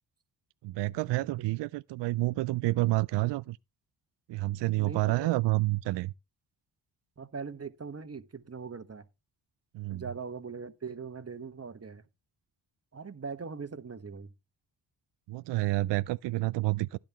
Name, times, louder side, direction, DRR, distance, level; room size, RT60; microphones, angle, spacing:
voice 1, 0.6-3.6 4.3-6.1 9.7-10.0 15.3-17.0, right 19 dB, 65° right, 0.5 m, -29 dB
voice 2, 4.8-5.3 7.2-9.1 9.9-12.0 12.9-14.3, right 5 dB, 30° right, 1.4 m, -41 dB
12.5 x 10.0 x 3.0 m
supercardioid pair, 45°, 47 cm